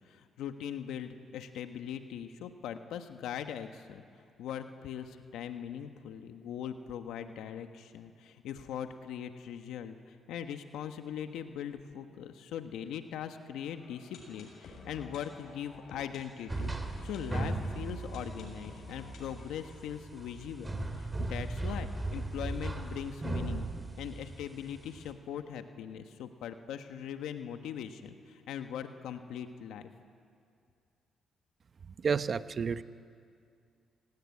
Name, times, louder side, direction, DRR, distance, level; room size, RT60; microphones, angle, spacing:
voice 1, 0.0-4.0 4.4-16.7 17.0-23.7 24.0-29.9, left 9 dB, 85° left, 7 dB, 1.3 m, -41 dB
sound 1, 13.6-21.4 21.7-21.8 22.0-22.1 22.6-22.7, left 3 dB, 70° left, 6.7 m, -52 dB
sound 2, 16.5-25.1, right 2 dB, 15° right, 3.1 m, -37 dB
voice 2, 32.0-32.8, right 6 dB, 45° right, 13 dB, 0.8 m, -30 dB
28.0 x 18.0 x 9.8 m, 2.3 s
cardioid pair, 90°, 0 cm